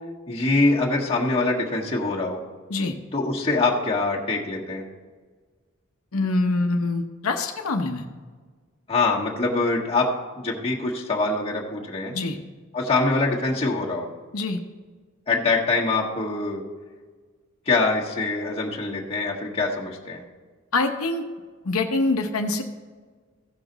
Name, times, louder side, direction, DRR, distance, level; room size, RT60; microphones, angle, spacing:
voice 1, 0.3-2.4 3.1-4.8 8.9-10.1 10.4-12.1 12.7-14.1 15.3-16.6 17.7-20.2, left 3 dB, 30° left, -3 dB, 1.5 m, -24 dB
voice 2, 6.1-8.1 12.1-12.4 14.3-14.6 20.7-21.2 21.6-22.6, left 3 dB, 90° left, 4 dB, 0.8 m, -24 dB
15.5 x 6.1 x 3.9 m, 1.5 s
head